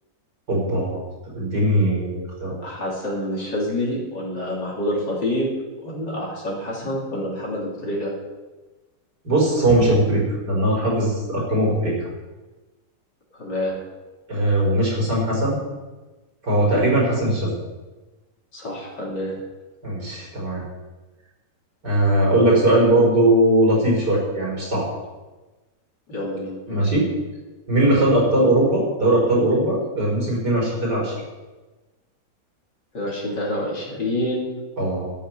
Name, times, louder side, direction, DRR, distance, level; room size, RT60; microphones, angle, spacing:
voice 1, 0.5-1.0 1.3-2.6 9.2-12.1 14.3-15.6 16.4-17.5 19.8-20.6 21.8-24.9 26.7-27.1 27.7-31.2 34.8-35.1, right 1 dB, 65° right, -3 dB, 5.3 m, -20 dB
voice 2, 2.6-5.5 5.8-8.1 13.3-13.7 18.5-19.3 26.1-26.5 32.9-34.6, left 1 dB, 70° left, -4 dB, 3.9 m, -27 dB
13.0 x 9.5 x 5.9 m, 1.2 s
omnidirectional pair, 2.0 m